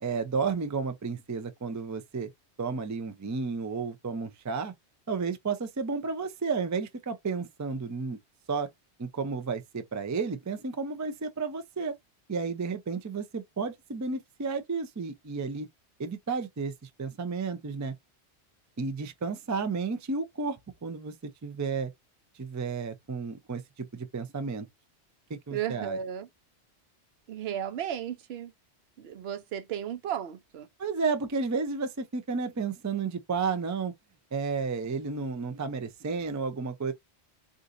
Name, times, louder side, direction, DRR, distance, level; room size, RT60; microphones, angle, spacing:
voice 1, 0.0-2.3 2.6-4.7 5.1-8.2 8.5-8.7 9.0-11.9 12.3-15.7 16.0-17.9 18.8-21.9 22.3-24.7 25.3-26.0 30.8-33.9 34.3-36.9, right 4 dB, 30° right, 0.3 m, -32 dB
voice 2, 25.5-26.3 27.3-28.5 29.0-30.7, right 9 dB, 70° right, 0.8 m, -34 dB
4.0 x 2.5 x 2.5 m
omnidirectional pair, 1.1 m